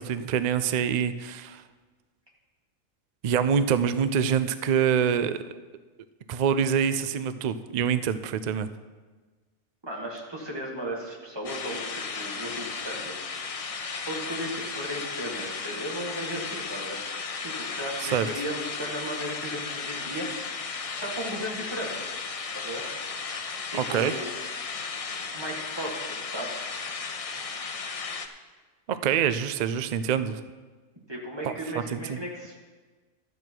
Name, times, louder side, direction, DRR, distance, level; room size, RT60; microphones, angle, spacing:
voice 1, 0.0-1.6 3.2-5.4 6.3-8.7 18.0-18.3 23.9-24.2 28.9-30.4 31.4-31.5 31.9-32.2, right 8 dB, 90° right, 12 dB, 0.3 m, -25 dB
voice 2, 9.8-13.3 14.1-17.0 17.4-20.3 21.0-22.0 22.5-22.9 23.7-24.3 25.3-26.6 31.1-32.6, equal, 20° right, -2 dB, 1.9 m, -35 dB
sound 1, 11.4-28.3, left 5 dB, 45° left, 0.5 m, -35 dB
12.0 x 8.3 x 4.6 m, 1.4 s
omnidirectional pair, 1.4 m